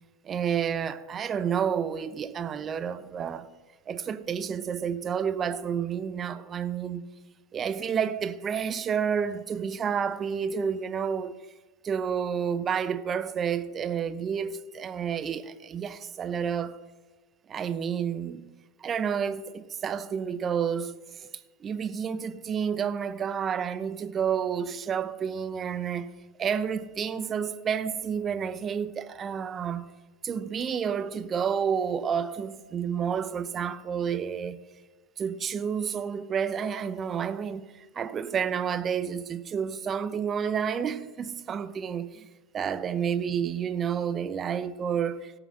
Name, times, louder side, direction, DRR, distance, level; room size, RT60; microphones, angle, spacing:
voice 1, 0.2-3.5 3.9-7.0 7.5-11.4 11.8-16.8 17.5-18.5 18.8-21.3 21.6-26.1 26.4-29.9 30.2-34.6 35.2-42.3 42.5-45.3, right 7 dB, 30° right, 0.7 m, -30 dB
17.0 x 6.0 x 6.5 m
hypercardioid pair, 100°, 0 cm